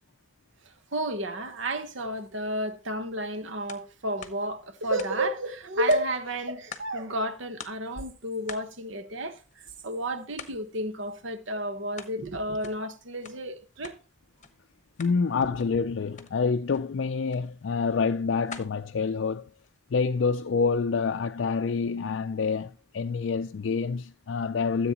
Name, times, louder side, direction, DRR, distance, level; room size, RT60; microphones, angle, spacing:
voice 1, 0.9-9.4 9.8-14.0, right 1 dB, 65° right, 1.2 m, -31 dB
sound 1, 3.7-3.9 4.2-5.5 5.9-7.1 7.3-7.4 7.6-7.9 8.5-9.9 10.3-10.7 11.1-12.2 12.5-14.0 14.4-14.5 14.8-15.2 15.6-15.8 16.1-16.3 16.7-16.9 17.3-17.5 17.9-19.8, left 6 dB, 35° left, 1.0 m, -46 dB
voice 2, 15.0-19.4 19.9-24.9, left 5 dB, 60° left, 0.4 m, -27 dB
14.0 x 7.9 x 2.9 m
head